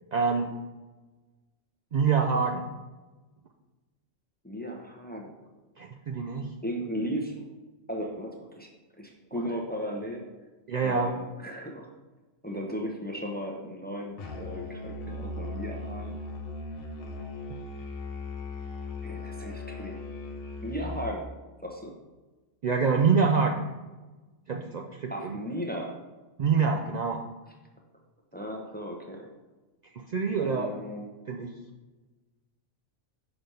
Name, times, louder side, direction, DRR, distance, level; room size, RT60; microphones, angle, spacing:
voice 1, 0.1-0.6 1.9-2.7 5.8-6.5 9.3-9.4 10.7-11.1 22.6-23.7 24.5-25.4 26.4-27.2 29.9-30.7 31.3-31.5, right 5 dB, 80° right, 2 dB, 0.3 m, -26 dB
voice 2, 4.4-5.3 6.6-7.3 7.9-8.7 9.0-10.3 10.8-11.9 12.4-16.2 19.0-20.0 20.6-21.3 21.6-21.9 25.1-26.0 28.3-29.3 30.4-31.1, equal, 10° left, 0 dB, 0.6 m, -36 dB
Musical instrument, 14.2-21.2, left 3 dB, 55° left, 0.8 m, -38 dB
5.9 x 3.4 x 5.4 m, 1.2 s
omnidirectional pair, 1.3 m